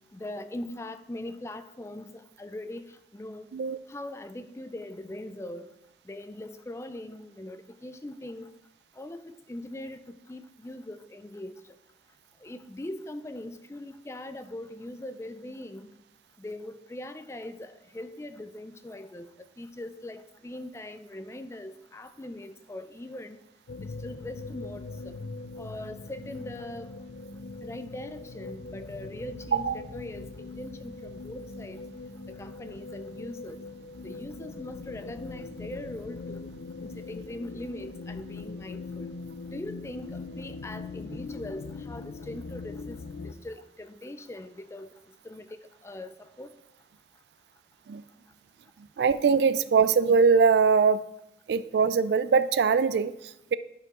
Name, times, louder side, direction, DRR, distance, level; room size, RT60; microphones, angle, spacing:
voice 1, 0.1-3.5 3.9-5.7 6.1-8.6 9.0-10.0 10.3-11.5 12.4-15.9 16.4-23.4 23.8-25.2 25.6-26.9 27.6-31.8 32.3-33.6 34.0-36.5 36.8-39.1 39.5-43.0 43.2-45.0 45.2-46.5, left 1 dB, 15° left, 10 dB, 0.3 m, -41 dB
sound 1, 23.7-43.3, left 3 dB, 85° left, 0.5 m, -41 dB
voice 2, 49.0-51.0 51.5-53.5, right 5 dB, 70° right, 14 dB, 0.3 m, -22 dB
11.0 x 4.7 x 3.6 m, 0.86 s
head